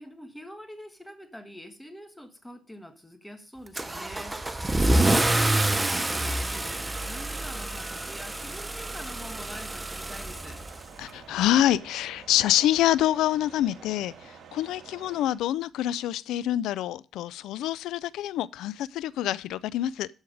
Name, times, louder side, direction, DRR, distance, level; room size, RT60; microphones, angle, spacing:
voice 1, 0.0-4.4 4.9-10.6, equal, 5° left, 1.5 m, -45 dB
Car / Engine starting / Accelerating revving vroom, 3.7-11.1, right 1 dB, 15° right, 0.7 m, -27 dB
sound 1, 3.8-15.4, right 6 dB, 65° right, 1.9 m, -49 dB
voice 2, 11.0-20.1, left 13 dB, 85° left, 0.3 m, -26 dB
13.0 x 4.7 x 4.9 m
cardioid pair, 90°, 0 cm